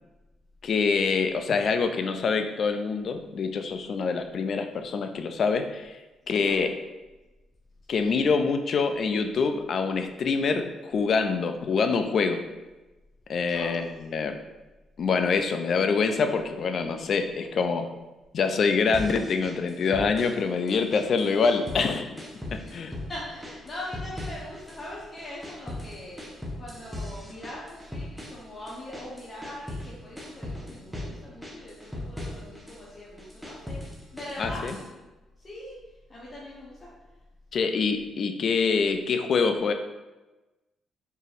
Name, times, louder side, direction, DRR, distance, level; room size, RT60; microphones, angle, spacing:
voice 1, 0.6-5.9 6.3-6.7 7.9-12.4 13.3-14.3 15.0-17.9 18.3-22.2 22.5-22.9 34.4-34.8 37.5-39.7, left 5 dB, 55° left, 7 dB, 0.4 m, -25 dB
sound 1, 18.9-20.4 20.7-21.9 22.2-23.1 23.4-24.9 25.2-29.9 30.2-31.1 31.4-32.8 33.2-34.9, left 1 dB, 5° right, 0.8 m, -38 dB
voice 2, 23.1-26.3 26.6-34.8 35.4-35.8 36.1-36.9, left 1 dB, 30° left, -7 dB, 0.9 m, -41 dB
4.4 x 3.2 x 2.5 m, 1.1 s
cardioid pair, 90°, 0 cm